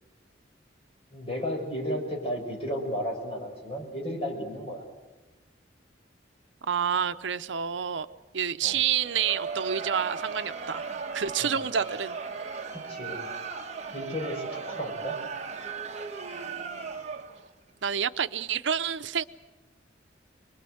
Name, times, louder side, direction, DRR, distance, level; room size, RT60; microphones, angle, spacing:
voice 1, 1.1-4.8 8.6-8.8 11.4-11.5 12.7-13.2 13.9-15.2 16.0-16.1, equal, 30° left, 0 dB, 5.8 m, -33 dB
voice 2, 6.6-8.1 8.3-12.2 16.3-16.9 17.8-19.2, right 8 dB, 80° right, 11 dB, 0.7 m, -29 dB
Crowd, 9.0-17.5, right 5 dB, 40° right, 1.3 m, -37 dB
26.5 x 21.0 x 7.9 m, 1.2 s
head